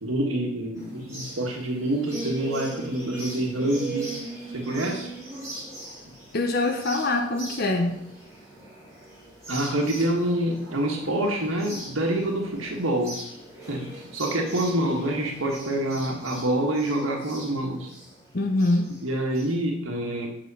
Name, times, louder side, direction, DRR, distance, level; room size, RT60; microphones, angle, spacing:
voice 1, 0.0-4.1 4.5-5.1 9.5-13.2 13.7-17.9 19.0-20.3, right 1 dB, 85° right, 1 dB, 1.6 m, -27 dB
sound 1, 0.8-19.5, right 2 dB, 15° right, 3.8 m, -40 dB
voice 2, 6.3-8.0 18.3-19.0, left 2 dB, 50° left, 3 dB, 0.8 m, -24 dB
7.4 x 6.4 x 5.5 m, 0.78 s
head